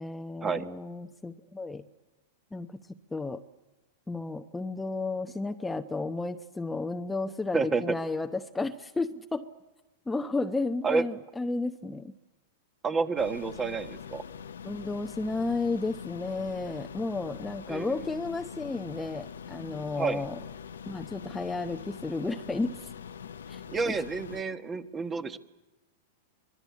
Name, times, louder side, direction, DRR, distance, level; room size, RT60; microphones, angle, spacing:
voice 1, 0.0-1.8 2.5-2.8 3.1-3.4 4.1-9.5 10.1-12.1 14.6-20.4 20.9-22.9 23.5-23.9, left 3 dB, 10° left, 6 dB, 0.8 m, -33 dB
voice 2, 7.5-8.0 10.8-11.0 12.8-14.2 17.7-18.0 19.9-20.2 23.7-25.4, right 4 dB, 20° right, 9 dB, 1.4 m, -29 dB
sound 1, 13.2-24.4, left 7 dB, 85° left, 0.7 m, -43 dB
24.5 x 21.0 x 8.5 m, 1.1 s
hypercardioid pair, 110°, 0 cm